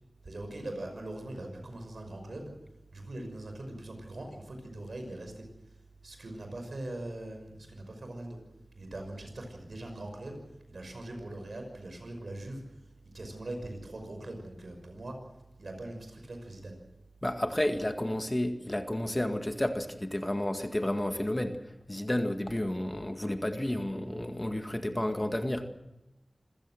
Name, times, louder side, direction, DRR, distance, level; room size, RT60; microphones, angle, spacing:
voice 1, 0.2-2.5 2.9-5.4 6.0-8.4 8.8-10.4 10.7-12.6 13.1-15.2 15.6-16.8, right 1 dB, 80° right, 5 dB, 6.0 m, -41 dB
voice 2, 17.2-21.6 21.9-25.7, left 1 dB, 20° left, 6 dB, 1.9 m, -31 dB
26.5 x 15.5 x 7.8 m, 0.95 s
wide cardioid pair, 60°, 0 cm